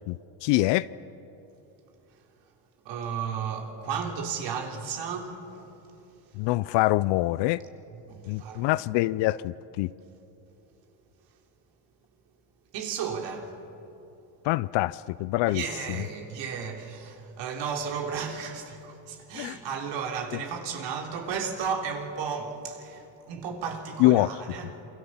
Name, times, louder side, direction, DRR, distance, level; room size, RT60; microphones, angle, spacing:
voice 1, 0.1-0.9 6.4-7.6 8.3-9.9 14.4-15.6 15.9-16.0 19.3-19.6 24.0-24.3, left 18 dB, 70° left, 0.6 m, -25 dB
voice 2, 2.9-5.7 8.1-8.7 12.7-13.6 15.5-24.7, right 6 dB, 70° right, 3.6 m, -34 dB
27.5 x 24.0 x 7.3 m
supercardioid pair, 100°, 45 cm